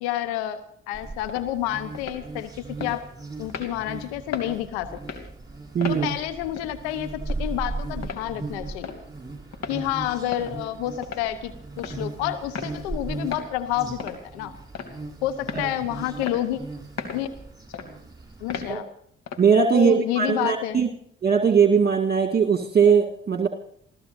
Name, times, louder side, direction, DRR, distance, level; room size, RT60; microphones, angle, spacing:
voice 1, 0.0-3.0 3.4-5.2 5.9-9.0 9.7-14.5 15.2-16.6 17.1-17.3 18.4-18.9 19.7-20.8, left 12 dB, 80° left, 12 dB, 1.0 m, -29 dB
sound 1, 0.9-18.7, right 3 dB, 10° right, 6.8 m, -37 dB
sound 2, 1.3-1.4 1.9-2.2 2.8-2.9 3.5-3.7 4.3-4.5 5.0-5.2 5.8-6.0 6.6-6.7 7.3-7.4 8.0-8.2 8.8-9.0 9.5-9.8 10.3-10.5 11.0-11.3 11.8-12.0 12.6-12.7 13.3-13.5 14.0-14.2 14.7-15.0 15.5-15.7 16.2-16.4 17.0-17.2 17.7-17.9 18.5-18.7 19.3-19.5, left 6 dB, 55° left, 2.9 m, -34 dB
voice 2, 5.7-6.1 15.5-15.7 18.7-18.9 19.4-20.9 21.2-23.5, right 6 dB, 30° right, 5 dB, 2.0 m, -20 dB
29.0 x 15.0 x 2.6 m, 0.65 s
hypercardioid pair, 45°, 32 cm